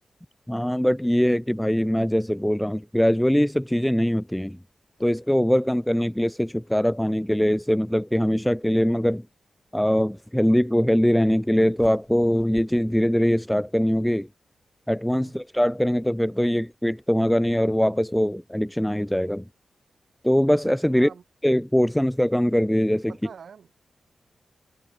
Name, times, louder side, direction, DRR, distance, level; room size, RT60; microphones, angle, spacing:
voice 1, 0.5-4.6 5.0-9.2 9.7-14.3 14.9-19.4 20.2-21.1 21.4-23.1, equal, 5° left, 0.4 m, -22 dB
sound 1, 11.7-14.1, left 5 dB, 55° left, 2.1 m, -51 dB
voice 2, 20.9-21.2 23.1-23.7, right 6 dB, 65° right, 3.0 m, -45 dB
wide cardioid pair, 120°, 0 cm